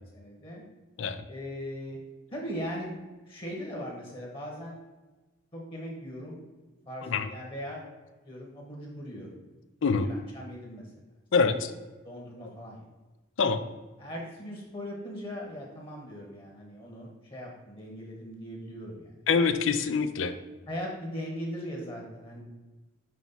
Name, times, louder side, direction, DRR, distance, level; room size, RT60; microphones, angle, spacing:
voice 1, 0.1-0.6 1.2-2.0 2.3-2.9 3.3-4.8 5.5-6.4 6.8-7.8 8.2-9.3 10.0-11.0 12.0-12.8 14.0-19.2 20.7-22.4, equal, 25° left, -1 dB, 1.1 m, -39 dB
voice 2, 11.3-11.7 13.4-13.6 19.3-20.3, left 5 dB, 75° left, 10 dB, 0.5 m, -25 dB
5.7 x 3.0 x 5.6 m, 1.2 s
head